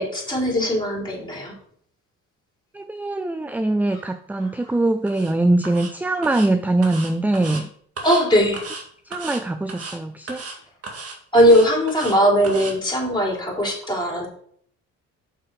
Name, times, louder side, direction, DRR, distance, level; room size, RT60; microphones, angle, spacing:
voice 1, 0.0-1.6 3.9-4.0 4.6-4.7 8.0-8.6 11.3-14.3, equal, 15° left, -2 dB, 3.9 m, -19 dB
voice 2, 2.7-7.7 9.1-10.4 13.6-13.7, right 2 dB, 5° right, 10 dB, 0.4 m, -22 dB
sound 1, 5.1-5.3 5.6-5.9 6.2-6.5 6.8-7.6 8.0-8.2 8.5-8.8 9.1-9.4 9.7-10.0 10.3-10.6 10.8-12.2 12.4-12.7, right 3 dB, 50° right, 2.0 m, -35 dB
6.9 x 5.9 x 4.9 m, 0.62 s
cardioid pair, 90°, 30 cm